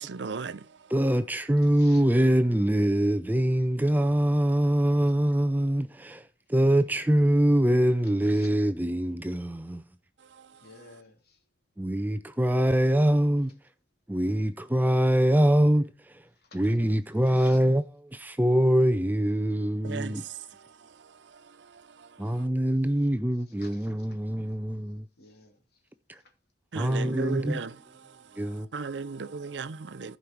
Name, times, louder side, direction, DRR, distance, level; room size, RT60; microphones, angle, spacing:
voice 1, 0.0-0.9 10.2-10.7 19.8-22.5 26.7-30.2, right 4 dB, 70° right, 0.6 m, -38 dB
voice 2, 0.9-9.8 11.8-13.6 14.1-16.2 16.5-17.8 18.1-20.2 22.2-25.1 26.1-26.2 26.7-27.6 28.4-28.7, right 1 dB, 10° right, 0.5 m, -24 dB
voice 3, 1.6-2.1 5.0-5.1 8.0-8.5 10.6-11.4 16.4-16.8 17.2-17.6 22.8-23.1 23.3-24.2 25.2-25.8 26.1-26.3 27.0-28.0, left 4 dB, 55° left, 2.8 m, -55 dB
15.0 x 5.3 x 4.5 m
head